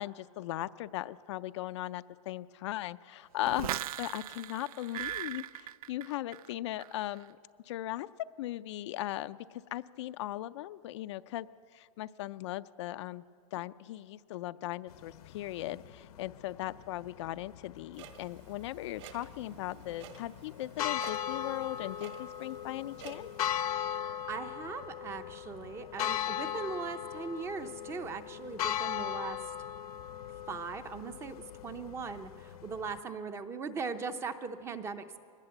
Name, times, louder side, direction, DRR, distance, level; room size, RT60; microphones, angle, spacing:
voice 1, 0.0-7.4 7.7-11.5 11.7-13.2 13.5-23.3, left 15 dB, 50° left, 12 dB, 0.5 m, -38 dB
sound 1, 3.4-6.5 6.8-7.2, right 12 dB, 70° right, 0.5 m, -39 dB
sound 2, 14.9-33.0, left 10 dB, 75° left, 0.9 m, -39 dB
Clock, 17.9-23.5, right 8 dB, 50° right, 1.8 m, -52 dB
voice 2, 23.9-29.5 30.5-35.2, right 5 dB, 15° right, 10 dB, 0.6 m, -39 dB
21.5 x 19.0 x 7.8 m, 2.4 s
supercardioid pair, 165°, 19 cm